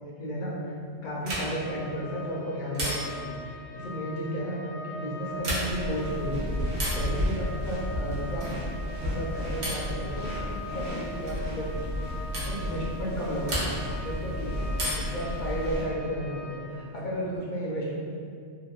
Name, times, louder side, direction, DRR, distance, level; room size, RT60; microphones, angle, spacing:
voice 1, 0.2-0.7 1.0-6.6 6.9-8.5 8.9-10.3 10.6-11.7 12.1-13.7 14.0-14.7 14.9-17.9, equal, 55° left, -4 dB, 0.6 m, -33 dB
sound 1, 1.2-1.7 2.7-3.3 5.3-5.9 6.7-7.1 8.4-8.7 9.6-10.0 11.3-11.5 12.3-12.6 13.5-14.0 14.7-15.2 16.7-17.4, equal, 50° right, 0.7 m, -33 dB
sound 2, 1.4-16.6, left 1 dB, 90° left, 1.0 m, -42 dB
sound 3, 5.7-15.8, left 1 dB, 75° right, 0.9 m, -33 dB
2.8 x 2.3 x 2.3 m, 2.3 s
omnidirectional pair, 1.1 m